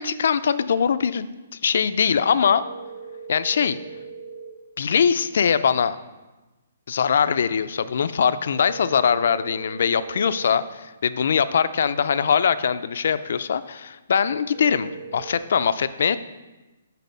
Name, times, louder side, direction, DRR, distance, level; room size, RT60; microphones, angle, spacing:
voice 1, 0.0-2.7 3.3-3.8 4.8-6.0 6.9-16.2, left 7 dB, 55° left, 14 dB, 0.4 m, -22 dB
sound 1, 2.6-4.5 8.5-10.5 14.5-15.4, right 5 dB, 65° right, 1.3 m, -39 dB
8.2 x 4.1 x 5.4 m, 1.1 s
hypercardioid pair, 170°, 0 cm